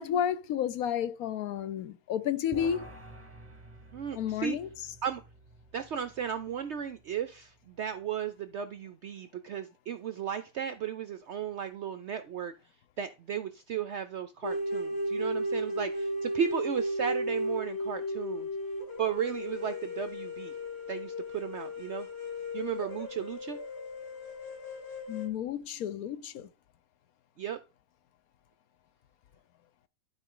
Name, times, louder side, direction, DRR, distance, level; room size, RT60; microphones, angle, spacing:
voice 1, 0.0-2.9 4.1-4.7 25.1-26.5, left 9 dB, 70° left, 1.1 m, -31 dB
sound 1, 2.5-8.0, right 1 dB, 15° right, 0.5 m, -51 dB
voice 2, 3.9-4.6 5.0-5.2 5.7-12.5 13.0-18.5 19.0-20.5 20.9-22.1 22.5-23.6 27.4-27.6, right 8 dB, 70° right, 0.6 m, -35 dB
haunted canyon flute, 14.4-25.3, equal, 40° left, 1.9 m, -35 dB
11.5 x 4.5 x 3.7 m
omnidirectional pair, 1.7 m